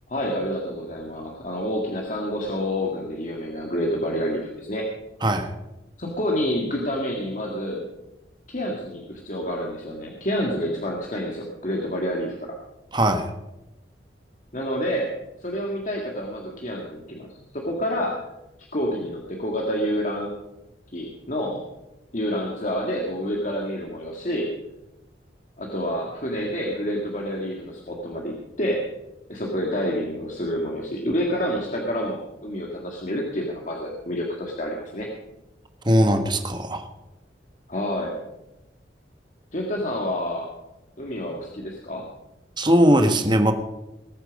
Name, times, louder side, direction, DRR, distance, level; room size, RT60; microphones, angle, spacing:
voice 1, 0.1-4.9 6.0-7.9 8.5-12.6 14.5-15.1 15.4-17.3 17.5-18.2 18.7-20.4 20.9-21.6 22.1-24.5 25.6-28.8 29.3-35.1 37.7-38.1 39.5-40.5 41.0-42.1, equal, 45° left, -1 dB, 1.9 m, -28 dB
voice 2, 5.2-5.5 12.9-13.3 35.8-36.9 42.6-43.5, equal, 25° right, 6 dB, 1.3 m, -19 dB
20.0 x 8.9 x 5.2 m, 0.97 s
head